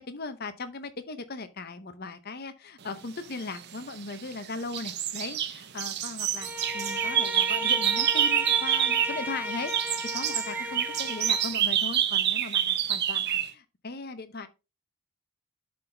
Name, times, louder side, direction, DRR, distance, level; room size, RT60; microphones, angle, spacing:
voice 1, 0.1-6.5 6.7-14.5, left 3 dB, 45° left, 0.7 m, -38 dB
sound 1, 3.6-4.4 4.7-9.2 9.5-13.5, right 10 dB, 50° right, 0.6 m, -27 dB
Bowed string instrument, 6.4-11.6, equal, 10° right, 0.5 m, -35 dB
11.5 x 4.0 x 3.3 m
head